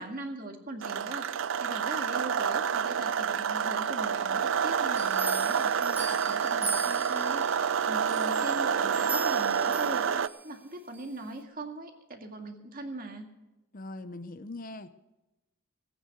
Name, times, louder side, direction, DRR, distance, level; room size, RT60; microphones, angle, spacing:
voice 1, 0.0-13.3, right 2 dB, 45° right, 4 dB, 2.0 m, -40 dB
sound 1, 0.8-10.3, right 7 dB, 65° right, 0.5 m, -28 dB
sound 2, 5.0-7.5 8.1-10.4 10.9-11.1, right 3 dB, 10° right, 1.5 m, -38 dB
voice 2, 13.7-14.9, left 2 dB, 40° left, 12 dB, 0.7 m, -41 dB
18.0 x 9.3 x 6.6 m, 1.0 s
head